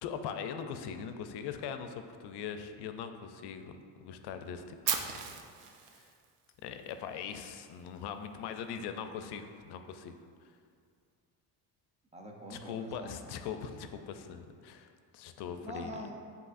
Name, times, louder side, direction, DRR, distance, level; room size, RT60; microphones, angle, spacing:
voice 1, 0.0-4.8 5.0-6.1 6.6-10.1 12.5-15.9, left 7 dB, 65° left, 8 dB, 0.5 m, -41 dB
Fire, 4.9-6.9, right 8 dB, 75° right, 0.6 m, -36 dB
voice 2, 12.1-13.4 15.6-16.1, equal, 15° right, 1 dB, 0.6 m, -44 dB
7.8 x 2.8 x 2.4 m, 2.2 s
cardioid pair, 90°, 43 cm